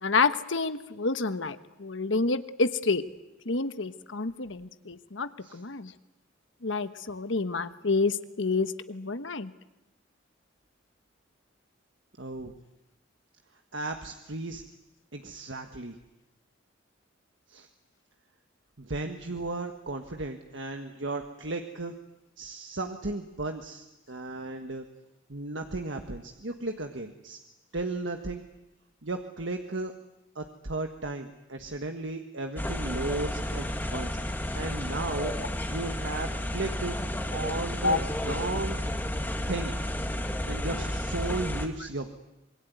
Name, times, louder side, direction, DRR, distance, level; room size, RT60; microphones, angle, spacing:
voice 1, 0.0-3.0 3.4-5.9 6.6-9.5 37.8-38.0 41.8-41.9, left 3 dB, 70° left, 11 dB, 1.2 m, -28 dB
voice 2, 12.2-12.5 13.7-14.6 15.1-16.0 17.5-17.7 18.8-21.9 22.4-24.8 25.3-27.4 27.7-28.5 29.0-29.9 30.3-33.7 33.9-35.3 35.7-37.0 37.3-38.8 39.5-39.8 40.5-42.2, right 2 dB, 65° right, 5 dB, 1.6 m, -35 dB
sound 1, 32.6-41.7, left 1 dB, 10° left, 2.1 m, -32 dB
26.0 x 22.5 x 9.5 m, 0.94 s
head